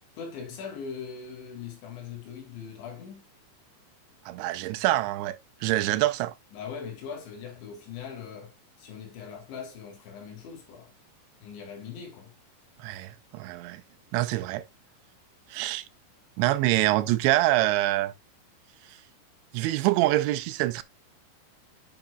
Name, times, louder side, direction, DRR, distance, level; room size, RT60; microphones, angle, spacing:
voice 1, 0.2-3.3 6.5-10.9 11.4-12.3, left 6 dB, 80° left, 4.4 m, -41 dB
voice 2, 4.3-6.3 12.8-13.8 14.1-14.6 15.5-15.9 16.4-18.1 19.5-20.8, right 16 dB, 85° right, 2.9 m, -25 dB
9.2 x 6.4 x 2.3 m
omnidirectional pair, 5.2 m